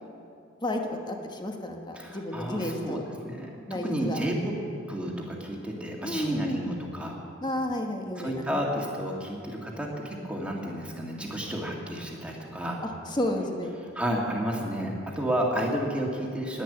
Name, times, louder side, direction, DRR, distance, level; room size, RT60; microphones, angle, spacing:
voice 1, 0.6-3.0 3.7-4.4 6.0-6.7 7.4-8.6 12.8-13.8, left 1 dB, 20° left, 2 dB, 1.3 m, -32 dB
voice 2, 2.0-4.5 4.9-7.2 8.2-12.8 13.9-16.6, equal, 5° right, -2 dB, 2.0 m, -31 dB
10.5 x 10.0 x 9.9 m, 2.6 s
head